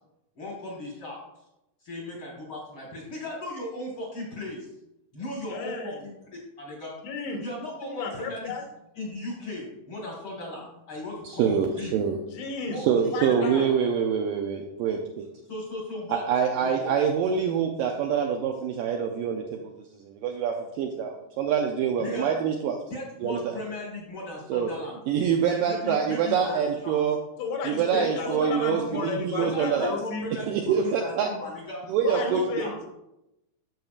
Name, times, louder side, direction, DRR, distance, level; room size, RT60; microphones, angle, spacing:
voice 1, 0.4-1.2 1.8-4.6 5.1-6.1 6.6-6.9 7.4-8.6 8.9-12.0 12.6-13.7 15.5-16.3 16.6-16.9 22.0-22.3 22.9-25.0 25.5-27.0 27.9-29.1 29.4-32.7, left 1 dB, 55° left, -2 dB, 1.4 m, -37 dB
voice 2, 5.5-6.0 7.0-7.5 7.8-8.6 12.3-12.8 13.1-13.7 27.4-30.3 32.0-32.9, left 4 dB, 85° left, 3 dB, 3.2 m, -33 dB
voice 3, 11.2-12.2 12.8-15.3 16.1-19.7 20.0-22.8 23.2-23.6 24.5-24.7 25.1-27.2 27.6-29.9 30.5-31.3 31.9-32.4, right 7 dB, 85° right, 2 dB, 2.0 m, -25 dB
10.5 x 7.0 x 2.4 m, 0.88 s
omnidirectional pair, 4.6 m